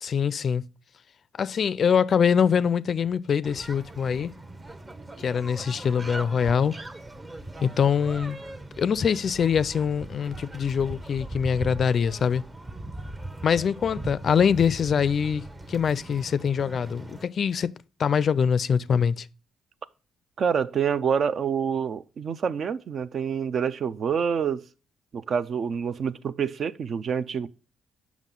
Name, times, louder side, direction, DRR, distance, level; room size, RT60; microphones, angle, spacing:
voice 1, 0.0-0.6 1.4-4.3 5.2-6.8 7.6-8.4 8.8-12.4 13.4-17.7 18.0-19.3, left 7 dB, 50° left, 0.4 m, -24 dB
sound 1, 3.4-17.2, right 2 dB, 25° right, 0.9 m, -40 dB
voice 2, 20.4-24.6 25.1-27.5, right 7 dB, 55° right, 0.5 m, -27 dB
7.3 x 6.0 x 3.7 m
cardioid pair, 90°, 0 cm